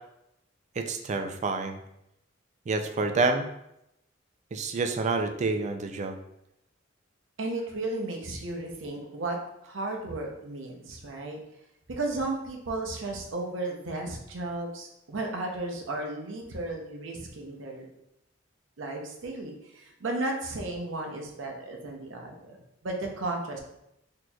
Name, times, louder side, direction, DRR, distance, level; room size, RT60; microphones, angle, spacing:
voice 1, 0.8-1.8 2.7-3.5 4.5-6.2, right 3 dB, 40° right, 6 dB, 0.3 m, -28 dB
voice 2, 7.4-11.4 11.9-17.9 18.8-22.6 22.8-23.6, right 2 dB, 85° right, 1 dB, 0.7 m, -34 dB
4.2 x 2.9 x 2.3 m, 0.82 s
head